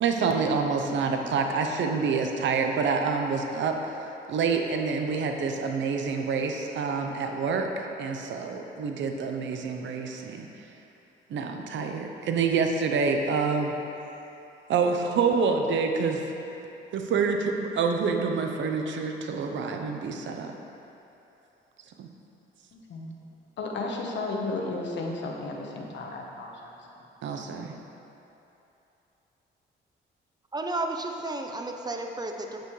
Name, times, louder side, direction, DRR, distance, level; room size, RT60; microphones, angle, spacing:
voice 1, 0.0-3.8 4.3-10.5 11.3-13.7 14.7-16.2 16.9-20.5 22.0-22.1 27.2-27.7, right 5 dB, 70° right, 4 dB, 0.8 m, -27 dB
voice 2, 22.7-23.1 23.6-26.8, left 2 dB, 65° left, 0 dB, 1.2 m, -33 dB
voice 3, 30.5-32.7, right 2 dB, 20° right, 3 dB, 0.7 m, -32 dB
8.8 x 8.0 x 3.2 m, 2.9 s
cardioid pair, 90°, 20 cm